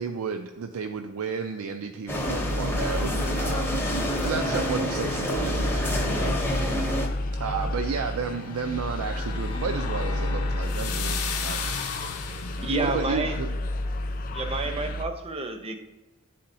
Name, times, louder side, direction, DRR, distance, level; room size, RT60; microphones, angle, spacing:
voice 1, 0.0-6.4 7.4-11.8 12.8-13.5, right 5 dB, 75° right, 6 dB, 0.4 m, -32 dB
sound 1, 2.1-7.1, equal, 10° left, 0.8 m, -28 dB
sound 2, 2.2-15.1, left 1 dB, 40° left, 0.4 m, -31 dB
sound 3, 8.2-12.8, left 7 dB, 85° left, 0.7 m, -36 dB
voice 2, 12.6-13.4 14.3-15.8, right 2 dB, 25° right, 7 dB, 0.6 m, -29 dB
11.0 x 4.2 x 2.6 m, 1.1 s
head